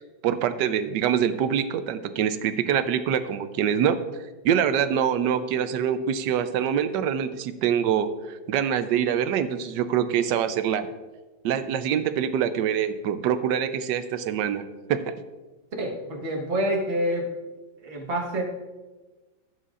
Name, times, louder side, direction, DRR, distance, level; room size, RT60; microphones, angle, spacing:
voice 1, 0.2-4.0 4.4-10.9 11.4-14.6 14.9-15.1, right 8 dB, 75° right, 11 dB, 1.2 m, -25 dB
voice 2, 15.8-17.3 17.8-18.4, equal, 35° right, 0 dB, 1.5 m, -27 dB
15.0 x 8.2 x 2.5 m, 1.2 s
omnidirectional pair, 2.0 m